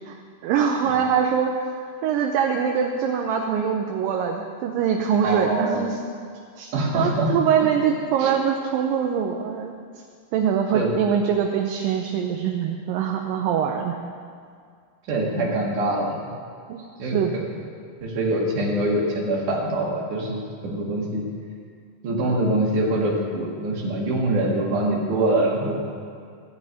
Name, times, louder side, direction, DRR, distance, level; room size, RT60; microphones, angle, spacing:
voice 1, 0.4-1.5 2.0-6.0 6.6-9.7 10.3-14.0 16.7-17.4, right 7 dB, 80° right, 2 dB, 2.4 m, -23 dB
voice 2, 5.2-5.9 6.7-7.3 7.6-7.7 8.2-8.3 10.7-10.9 15.1-16.2 17.0-17.5 18.0-21.3 22.0-25.8, right 1 dB, 65° right, -2 dB, 3.1 m, -24 dB
15.5 x 5.3 x 9.0 m, 2.2 s
omnidirectional pair, 4.1 m